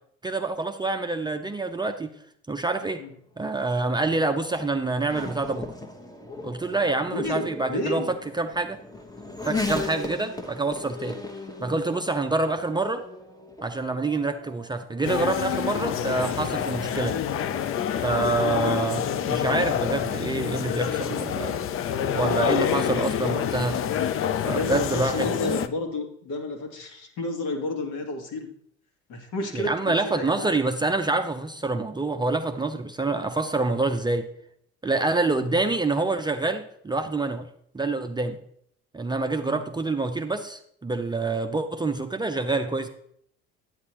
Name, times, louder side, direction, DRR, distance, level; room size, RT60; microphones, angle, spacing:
voice 1, 0.2-2.1 2.5-3.0 3.4-5.7 6.4-8.8 9.5-11.2 11.6-13.0 13.6-17.2 18.0-21.6 22.1-23.8 24.5-25.6 29.5-34.3 34.8-37.5 37.7-38.4 38.9-42.9, right 3 dB, 10° right, 5 dB, 0.6 m, -26 dB
Race car auto racing / Accelerating revving vroom, 3.1-19.4, left 3 dB, 10° left, 1.2 m, -38 dB
voice 2, 7.1-8.1 22.9-23.0 24.4-28.5 29.1-29.7 30.0-30.5 35.4-35.5 39.5-39.6, left 2 dB, 60° left, 3 dB, 1.8 m, -31 dB
sound 1, 15.0-25.7, left 9 dB, 40° left, 0.6 m, -27 dB
9.6 x 8.8 x 3.1 m, 0.67 s
figure-of-eight pair, 60°, 35 cm